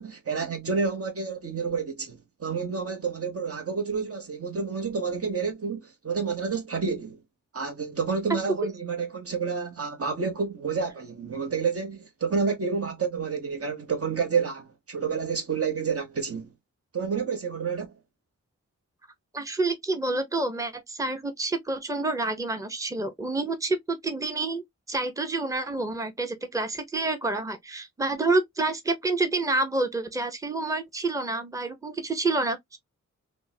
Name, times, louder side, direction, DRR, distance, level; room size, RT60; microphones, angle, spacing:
voice 1, 0.0-7.2 7.5-16.5 16.9-17.9, right 5 dB, 50° right, 0.9 m, -29 dB
voice 2, 19.3-32.8, right 3 dB, 10° right, 0.8 m, -28 dB
3.5 x 2.1 x 2.6 m
cardioid pair, 50°, 31 cm